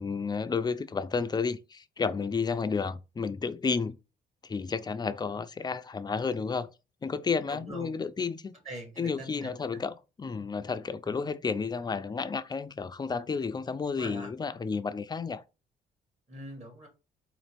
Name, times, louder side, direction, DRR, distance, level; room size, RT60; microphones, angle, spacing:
voice 1, 0.0-4.0 4.4-6.7 7.0-8.5 9.0-15.4, left 5 dB, 20° left, 0.3 m, -31 dB
voice 2, 7.5-8.0 8.7-9.8 11.1-11.2 14.0-14.3 16.3-16.9, right 1 dB, 35° right, 1.8 m, -43 dB
4.1 x 2.5 x 3.3 m
cardioid pair, 90°, 20 cm